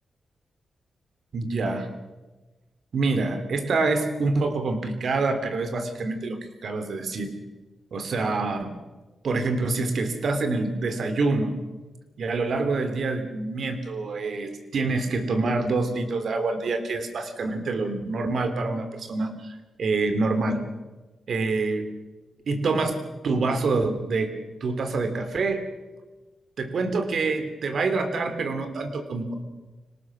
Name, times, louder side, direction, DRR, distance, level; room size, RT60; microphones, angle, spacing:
voice 1, 1.3-1.9 2.9-7.4 7.9-8.7 9.2-11.5 12.2-20.6 21.3-21.9 22.4-24.3 24.6-25.7 26.6-29.4, right 3 dB, 70° right, 8 dB, 3.1 m, -26 dB
25.0 x 19.0 x 6.2 m, 1.2 s
cardioid pair, 65°, 0 cm